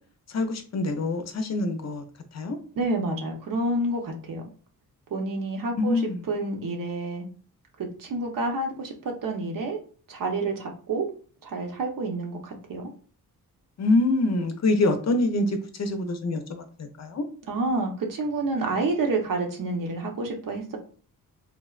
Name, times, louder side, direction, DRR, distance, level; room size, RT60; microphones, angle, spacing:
voice 1, 0.3-2.0 2.3-2.6 5.8-6.2 13.8-17.2, left 2 dB, 45° left, 0.6 m, -25 dB
voice 2, 2.8-4.4 5.1-6.0 6.3-7.3 7.8-9.8 10.1-11.1 11.4-12.9 17.5-20.8, right 2 dB, 60° right, 0.8 m, -29 dB
3.2 x 2.1 x 2.3 m
cardioid pair, 65°, 37 cm